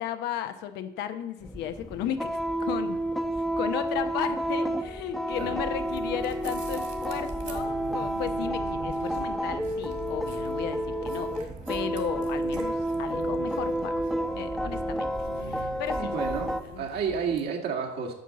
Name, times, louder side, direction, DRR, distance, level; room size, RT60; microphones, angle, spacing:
voice 1, 0.0-3.0 3.6-14.0 14.4-15.1 15.4-16.1 16.6-16.8, left 10 dB, 85° left, 9 dB, 0.9 m, -35 dB
sound 1, 1.4-16.6, right 1 dB, ahead, 0.8 m, -30 dB
sound 2, 5.3-17.4, right 6 dB, 50° right, 2.2 m, -44 dB
voice 2, 15.9-18.1, right 6 dB, 70° right, 2 dB, 2.1 m, -31 dB
9.0 x 5.5 x 7.6 m, 0.83 s
cardioid pair, 110°, 17 cm